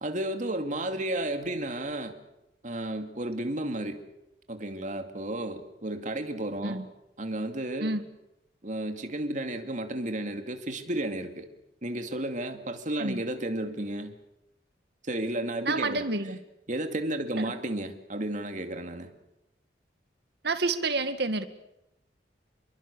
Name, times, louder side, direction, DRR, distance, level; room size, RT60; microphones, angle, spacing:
voice 1, 0.0-2.1 2.6-4.0 4.5-6.8 7.2-7.9 8.6-11.5 11.8-14.1 15.0-16.1 16.7-19.1, right 1 dB, 45° right, 6 dB, 2.5 m, -32 dB
voice 2, 15.7-16.4 17.4-17.5 20.4-21.5, right 3 dB, 65° right, 9 dB, 2.0 m, -29 dB
28.0 x 22.5 x 7.0 m, 0.86 s
head